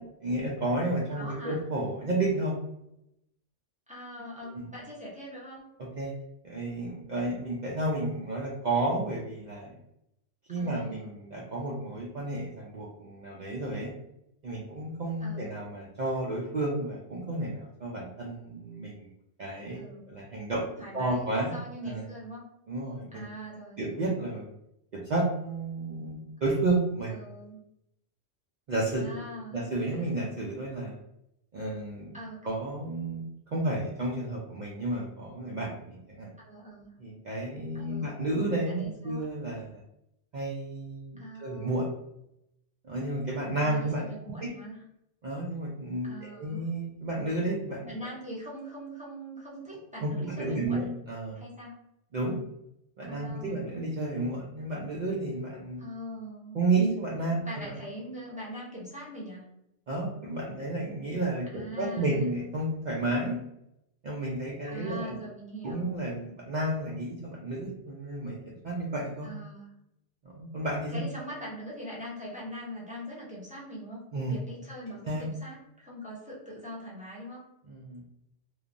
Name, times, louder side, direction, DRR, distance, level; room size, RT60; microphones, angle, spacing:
voice 1, 0.2-2.5 4.5-4.7 5.8-6.1 6.4-9.7 10.5-13.9 14.4-19.1 19.4-20.6 20.9-22.1 22.7-23.2 23.8-24.5 24.9-27.1 28.7-29.2 29.5-31.0 31.5-32.1 32.4-36.3 37.0-39.8 40.3-41.9 42.8-44.0 44.4-44.5 45.2-47.9 50.0-51.4 52.1-52.4 53.0-55.8 56.5-57.7 59.9-63.4 64.0-65.2 65.6-69.3 70.2-71.0 74.1-74.4 75.0-75.3 77.7-78.0, right 2 dB, 55° right, -4 dB, 0.5 m, -32 dB
voice 2, 1.1-1.6 3.9-5.7 10.5-11.1 15.2-15.6 19.7-20.2 20.8-22.4 23.1-24.0 27.1-27.6 29.0-29.7 32.1-32.5 36.4-37.0 37.7-38.2 38.6-39.3 41.2-41.8 43.6-44.8 46.0-46.7 47.9-50.9 51.3-51.7 53.0-53.7 55.8-56.6 57.4-59.4 61.5-62.3 64.7-65.9 69.2-69.7 70.9-77.4, equal, 10° right, -6 dB, 0.7 m, -42 dB
3.1 x 2.1 x 2.5 m, 0.81 s
omnidirectional pair, 1.2 m